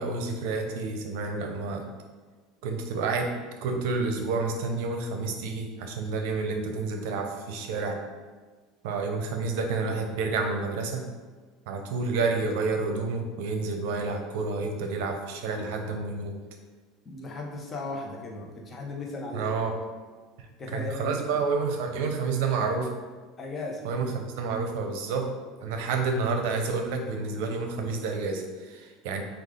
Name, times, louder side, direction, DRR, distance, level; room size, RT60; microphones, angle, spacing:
voice 1, 0.0-1.8 2.6-3.3 3.6-8.0 8.8-11.1 11.7-16.4 19.3-19.8 20.4-22.9 23.8-25.3 25.6-29.2, right 4 dB, 75° right, 4 dB, 0.6 m, -29 dB
voice 2, 17.0-19.5 20.6-21.2 23.4-23.9, left 2 dB, 25° left, -1 dB, 0.8 m, -36 dB
4.7 x 2.4 x 3.7 m, 1.4 s
supercardioid pair, 120°, 0 cm